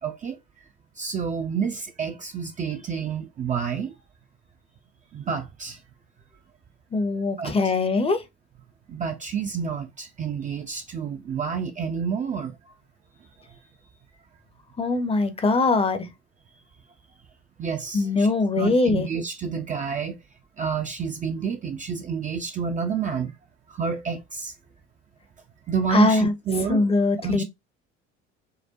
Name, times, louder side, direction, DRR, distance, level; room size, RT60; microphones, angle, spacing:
voice 1, 0.0-0.4 1.0-4.0 5.1-5.8 7.4-7.5 8.9-12.5 13.5-13.6 17.6-18.3 18.6-20.2 20.6-23.3 23.7-24.5 25.7-26.8 27.2-27.4, right 6 dB, 25° right, 0.4 m, -29 dB
voice 2, 6.9-8.2 14.8-16.1 17.9-19.1 25.9-26.3 26.7-27.4, left 3 dB, 15° left, 0.6 m, -22 dB
4.5 x 2.1 x 2.9 m
figure-of-eight pair, 65°, 34 cm